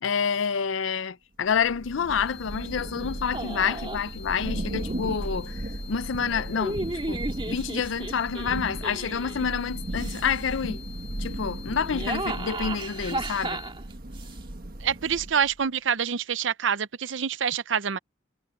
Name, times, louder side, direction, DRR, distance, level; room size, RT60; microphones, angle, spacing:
voice 1, 0.0-5.6 5.9-7.2 7.5-10.8 11.2-13.6, left 6 dB, 80° left, 0.5 m, -28 dB
Thunder / Rain, 1.5-15.6, right 1 dB, 50° right, 1.4 m, -36 dB
sound 1, 2.3-13.7, left 9 dB, 20° left, 2.1 m, -48 dB
sound 2, 3.3-4.1 4.8-5.4 6.3-9.5 9.9-10.5 11.7-14.4, right 2 dB, 25° right, 2.0 m, -34 dB
voice 2, 14.8-18.0, right 7 dB, 75° right, 0.7 m, -26 dB
head